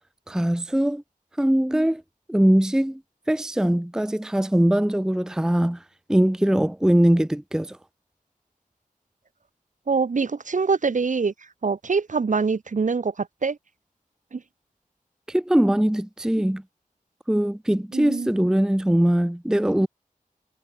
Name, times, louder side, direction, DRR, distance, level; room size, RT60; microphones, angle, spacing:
voice 1, 0.3-1.0 1.4-2.0 2.3-3.0 3.3-5.8 6.1-7.8 15.3-16.6 17.3-19.9, right 1 dB, 5° right, 0.6 m, -21 dB
voice 2, 9.9-11.3 11.6-13.6 14.3-14.4 17.9-18.3, right 4 dB, 60° right, 1.4 m, -24 dB
wide cardioid pair, 75°, 15 cm